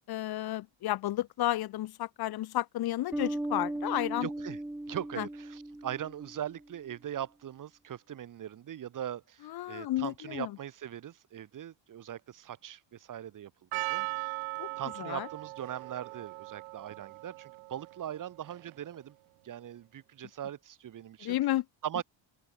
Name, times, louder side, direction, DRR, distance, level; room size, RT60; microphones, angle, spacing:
voice 1, 0.1-4.3 5.2-5.3 9.5-10.5 14.6-14.7 15.0-15.3 21.2-21.6, left 14 dB, 50° left, 1.4 m, -32 dB
Bass guitar, 3.1-6.6, right 1 dB, 5° right, 0.8 m, -37 dB
voice 2, 4.2-4.6 4.9-14.4 14.8-19.2 19.4-21.4 21.8-22.0, right 10 dB, 40° right, 4.1 m, -40 dB
Percussion, 13.7-18.9, right 23 dB, 80° right, 0.9 m, -39 dB
open air
cardioid pair, 165°, 47 cm